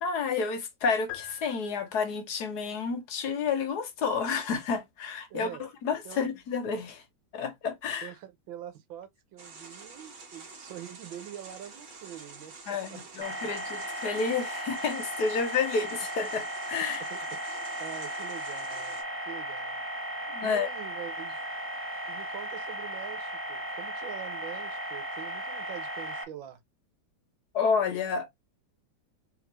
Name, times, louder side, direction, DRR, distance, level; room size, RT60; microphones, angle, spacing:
voice 1, 0.0-7.0 7.3-8.1 12.7-17.1 20.3-20.7 27.5-28.3, left 5 dB, 60° left, 1.3 m, -30 dB
sound 1, 1.1-2.4, left 15 dB, 90° left, 1.4 m, -44 dB
voice 2, 5.3-5.6 6.1-6.3 8.0-12.5 12.9-13.0 13.4-13.5 17.1-17.2 17.8-19.0 19.3-19.8 20.4-21.4 22.1-26.6, right 11 dB, 90° right, 1.7 m, -44 dB
sound 2, 9.4-19.0, right 4 dB, 65° right, 2.0 m, -48 dB
sound 3, 13.2-26.2, equal, 15° right, 0.4 m, -36 dB
3.7 x 3.2 x 3.0 m
omnidirectional pair, 2.1 m